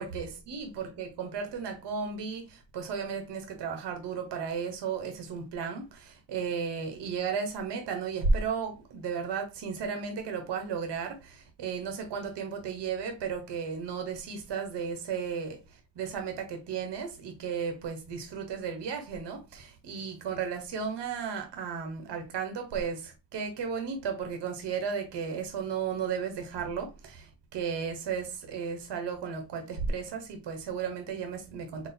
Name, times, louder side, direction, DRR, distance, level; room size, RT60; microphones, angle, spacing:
voice 1, 0.0-31.9, right 5 dB, 65° right, 1.2 m, -34 dB
4.0 x 2.3 x 4.3 m
cardioid pair, 130°, 45 cm